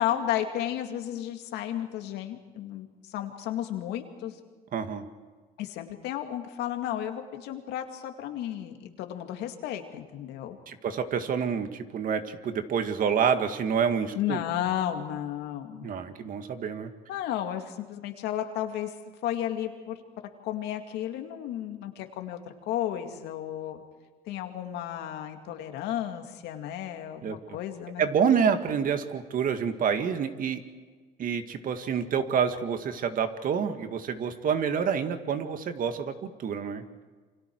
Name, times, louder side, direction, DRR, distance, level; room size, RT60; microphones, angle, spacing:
voice 1, 0.0-4.4 5.6-10.6 14.1-15.9 17.1-18.9 19.2-20.0 20.4-23.8 24.3-28.1, left 11 dB, 85° left, 5 dB, 2.3 m, -33 dB
voice 2, 4.7-5.1 10.7-14.4 15.8-16.9 27.2-27.4 28.0-30.6 31.2-36.8, right 7 dB, 55° right, 8 dB, 2.0 m, -28 dB
28.5 x 25.5 x 4.7 m, 1.4 s
cardioid pair, 110°, 17 cm